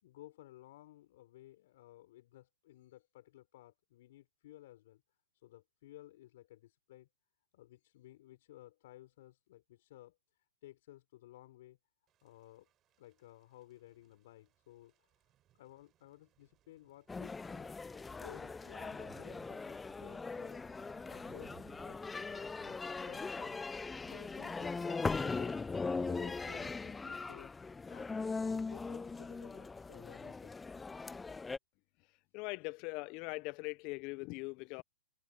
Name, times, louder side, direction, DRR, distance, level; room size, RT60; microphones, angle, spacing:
voice 1, 0.0-5.0 5.3-7.1 7.5-11.8 12.2-12.7 13.0-15.1 15.6-21.5 21.8-23.6 24.1-25.6 26.0-27.5 27.9-28.1 28.4-30.6, left 15 dB, 55° left, 5.1 m, -57 dB
Thunder / Rain, 12.1-27.7, right 12 dB, 30° right, 4.3 m, -66 dB
sound 1, 17.1-31.6, left 4 dB, 10° left, 0.5 m, -40 dB
voice 2, 32.3-34.8, left 26 dB, 40° left, 0.9 m, -41 dB
hypercardioid pair, 115°, 0 cm